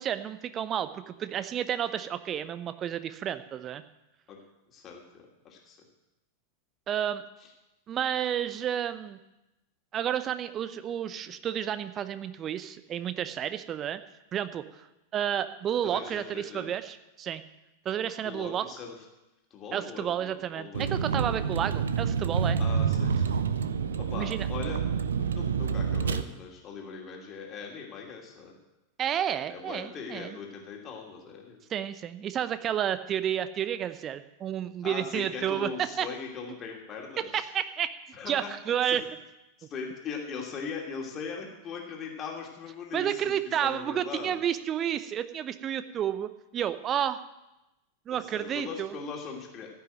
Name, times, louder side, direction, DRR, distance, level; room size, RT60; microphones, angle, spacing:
voice 1, 0.0-3.8 6.9-7.2 7.9-9.2 9.9-14.0 14.3-14.8 15.1-17.4 17.8-18.7 19.7-22.6 24.1-24.5 29.0-30.4 31.7-36.1 37.3-37.9 38.3-39.0 42.9-47.2 48.1-48.9, right 10 dB, 30° right, 12 dB, 0.7 m, -31 dB
voice 2, 4.7-5.8 15.8-16.7 18.2-18.9 19.5-21.3 22.6-23.4 24.0-24.8 25.1-28.5 29.5-31.6 34.8-37.5 38.1-38.5 38.9-39.0 39.7-43.3 43.6-44.4 48.1-49.7, left 5 dB, 30° left, -1 dB, 2.7 m, -40 dB
Vehicle, 20.7-26.2, right 6 dB, 65° right, 0.6 m, -28 dB
15.0 x 6.1 x 9.2 m, 0.97 s
figure-of-eight pair, 90°, 0 cm